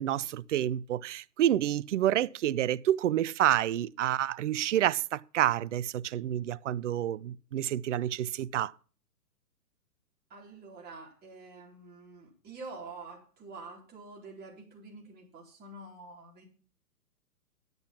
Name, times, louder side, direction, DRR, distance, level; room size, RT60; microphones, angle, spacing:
voice 1, 0.0-8.7, right 12 dB, 50° right, 0.5 m, -28 dB
voice 2, 10.3-16.4, right 3 dB, 20° right, 4.4 m, -47 dB
10.5 x 8.1 x 5.9 m
figure-of-eight pair, 130°, 48 cm